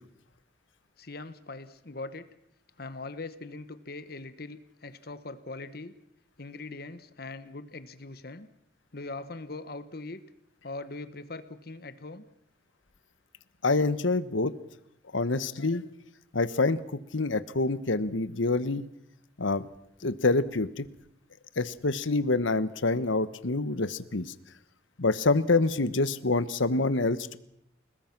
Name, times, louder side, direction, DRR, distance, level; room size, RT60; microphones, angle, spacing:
voice 1, 1.0-2.3 2.8-5.9 6.4-8.5 8.9-10.2 10.6-12.3, left 3 dB, 50° left, 12 dB, 1.2 m, -41 dB
voice 2, 13.6-14.5 15.1-15.8 16.3-16.8 17.1-18.8 19.4-19.7 20.0-20.8 21.6-24.3 25.0-27.4, left 3 dB, 80° left, 14 dB, 1.2 m, -26 dB
29.5 x 20.0 x 6.0 m, 0.75 s
head